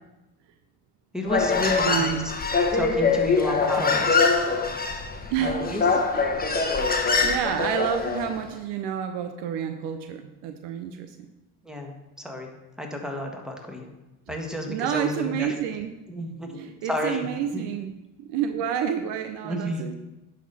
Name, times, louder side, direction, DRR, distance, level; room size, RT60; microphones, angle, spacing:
voice 1, 1.1-2.2 2.7-4.4 5.4-5.8 11.7-12.5 12.8-13.8 14.3-15.5 16.1-17.2 17.5-17.6 19.4-19.8, left 1 dB, ahead, 2 dB, 1.7 m, -31 dB
Human voice, 1.2-8.3, left 4 dB, 20° left, 1.1 m, -23 dB
voice 2, 1.8-2.3 5.3-6.3 7.2-11.3 14.7-15.9 16.5-19.9, right 9 dB, 65° right, 8 dB, 0.7 m, -29 dB
11.0 x 4.3 x 4.2 m, 1.0 s
hypercardioid pair, 60°, 46 cm